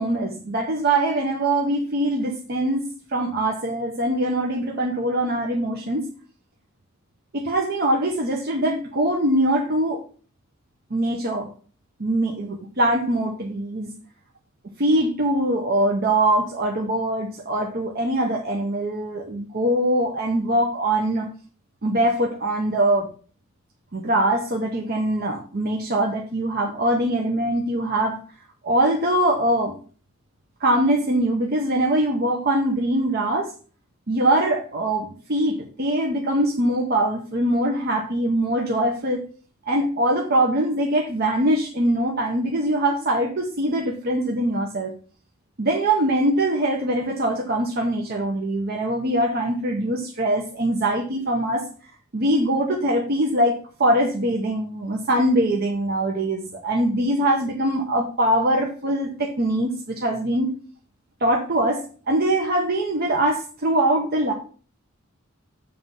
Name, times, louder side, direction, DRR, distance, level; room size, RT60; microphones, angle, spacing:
voice 1, 0.0-6.1 7.3-10.0 10.9-11.5 12.0-13.9 14.8-21.3 21.8-23.1 23.9-28.2 28.6-29.8 30.6-33.5 34.1-39.2 39.7-44.9 45.6-60.5 61.2-64.3, right 1 dB, 50° right, 0 dB, 0.9 m, -22 dB
7.8 x 3.4 x 5.3 m, 0.41 s
head